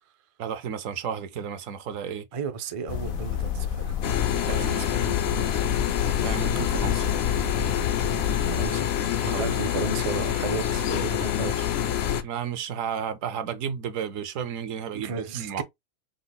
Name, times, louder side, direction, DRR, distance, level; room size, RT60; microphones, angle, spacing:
voice 1, 0.4-2.3 4.4-5.2 6.2-7.1 9.2-9.5 12.2-15.6, right 8 dB, 70° right, 1.0 m, -33 dB
voice 2, 2.3-4.0 4.5-5.6 8.5-8.9 9.2-11.7 12.1-12.3 14.9-15.6, right 5 dB, 55° right, 0.4 m, -34 dB
sound 1, 2.9-8.7, left 7 dB, 85° left, 1.1 m, -30 dB
sound 2, 4.0-12.2, left 10 dB, 65° left, 0.7 m, -27 dB
5.1 x 2.0 x 3.9 m
omnidirectional pair, 1.4 m